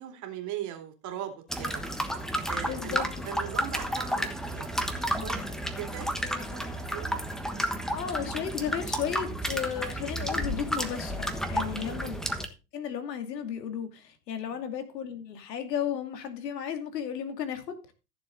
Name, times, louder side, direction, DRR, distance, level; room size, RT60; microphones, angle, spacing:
voice 1, 0.0-1.8 2.5-4.6 5.0-5.5 5.8-7.1 8.9-9.0 11.6-12.1 14.4-14.5, right 10 dB, 35° right, 5 dB, 2.7 m, -40 dB
sound 1, 1.5-12.5, equal, ahead, 1.2 m, -32 dB
voice 2, 2.7-3.3 7.9-12.2 12.7-17.9, left 8 dB, 75° left, 7 dB, 2.7 m, -34 dB
14.5 x 7.2 x 3.9 m, 0.30 s
hypercardioid pair, 115°, 49 cm